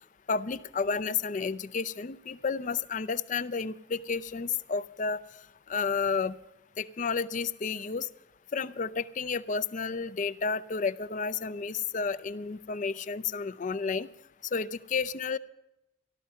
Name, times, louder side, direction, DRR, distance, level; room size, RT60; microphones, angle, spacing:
voice 1, 0.3-5.2 5.7-6.4 6.8-8.1 8.5-14.1 14.5-15.4, left 5 dB, 40° left, 15 dB, 0.5 m, -31 dB
13.5 x 12.5 x 5.5 m, 0.93 s
head